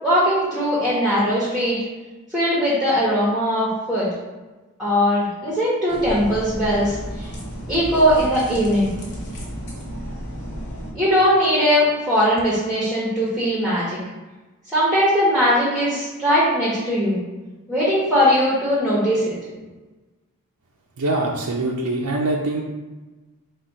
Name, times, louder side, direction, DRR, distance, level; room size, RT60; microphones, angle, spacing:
voice 1, 0.0-1.8 2.3-4.1 4.8-7.3 7.7-8.9 10.9-14.0 14.7-17.2 17.7-19.3, equal, ahead, -8 dB, 1.0 m, -20 dB
sound 1, 5.9-10.9, equal, 55° left, 1.1 m, -33 dB
voice 2, 21.0-22.6, right 2 dB, 85° right, -2 dB, 0.5 m, -23 dB
4.1 x 2.3 x 4.6 m, 1.2 s
head